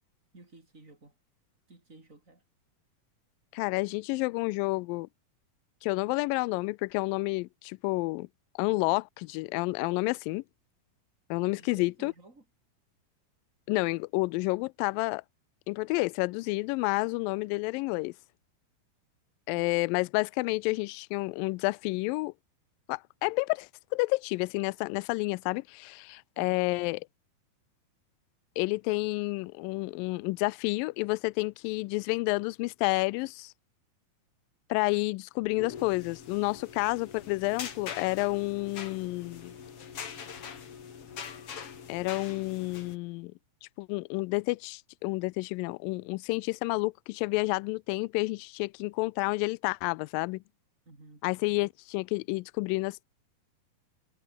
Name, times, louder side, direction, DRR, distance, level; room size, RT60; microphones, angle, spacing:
voice 1, 0.3-1.2 1.7-2.4 8.7-9.0 11.5-12.5 19.5-19.7 26.4-26.7 50.9-51.3, right 2 dB, 20° right, 5.5 m, -54 dB
voice 2, 3.5-5.1 5.8-8.3 8.6-9.0 9.3-10.4 11.3-12.1 13.7-15.2 15.7-18.1 19.5-22.3 22.9-27.0 28.6-33.5 34.7-39.6 41.9-43.3 43.8-50.4 51.2-53.0, left 24 dB, 85° left, 2.0 m, -30 dB
sound 1, 35.4-43.0, left 7 dB, 40° left, 2.7 m, -43 dB
omnidirectional pair, 4.6 m